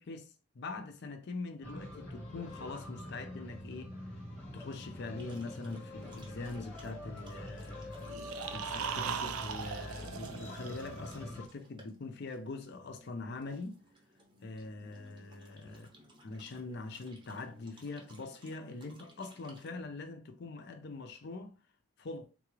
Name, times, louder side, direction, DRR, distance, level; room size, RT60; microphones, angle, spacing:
voice 1, 0.0-3.9 4.5-8.1 8.3-13.8 14.4-15.9 16.2-21.6 22.0-22.3, left 3 dB, 50° left, 0.4 m, -43 dB
sound 1, 1.6-11.5, left 1 dB, 5° left, 0.9 m, -45 dB
sound 2, 5.2-19.8, right 1 dB, 20° right, 0.7 m, -60 dB
sound 3, 8.0-11.2, right 7 dB, 75° right, 0.4 m, -39 dB
3.7 x 2.4 x 3.0 m
head